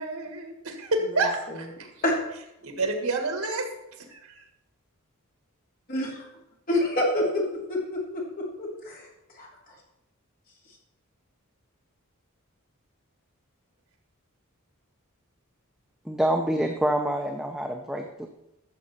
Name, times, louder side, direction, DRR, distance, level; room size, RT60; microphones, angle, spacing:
voice 1, 0.0-1.9 2.6-3.7 4.1-4.4, right 2 dB, 80° right, 4 dB, 1.9 m, -29 dB
voice 2, 1.1-1.7 2.0-2.2 5.9-6.3 6.7-9.1 9.3-9.8, left 1 dB, 40° left, -3 dB, 3.2 m, -28 dB
voice 3, 16.0-18.3, right 1 dB, ahead, 2 dB, 0.7 m, -26 dB
13.5 x 7.4 x 4.3 m, 0.89 s
head